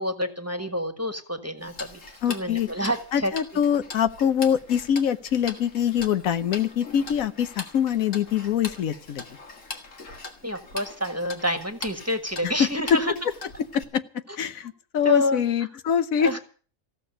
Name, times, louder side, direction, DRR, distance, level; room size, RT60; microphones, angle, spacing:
voice 1, 0.0-2.0 2.3-3.3 10.4-13.1 15.0-15.4 16.2-16.4, left 1 dB, 10° right, 7 dB, 1.4 m, -28 dB
Tick-tock, 1.6-13.8, left 3 dB, 65° left, 2.3 m, -41 dB
voice 2, 2.2-2.7 3.1-9.2 12.4-12.5 13.7-14.0 14.4-16.4, left 8 dB, 85° left, 12 dB, 1.3 m, -24 dB
16.0 x 6.8 x 9.9 m, 0.41 s
omnidirectional pair, 1.4 m